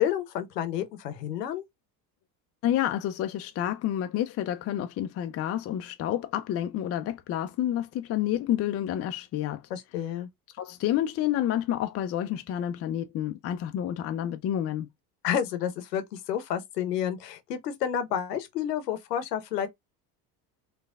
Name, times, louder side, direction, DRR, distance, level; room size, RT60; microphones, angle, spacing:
voice 1, 0.0-1.6 9.7-10.3 15.2-19.7, left 9 dB, 80° left, 0.9 m, -30 dB
voice 2, 2.6-9.6 10.5-14.9, left 11 dB, 35° left, 0.4 m, -29 dB
4.3 x 2.3 x 2.3 m
hypercardioid pair, 70°, 47 cm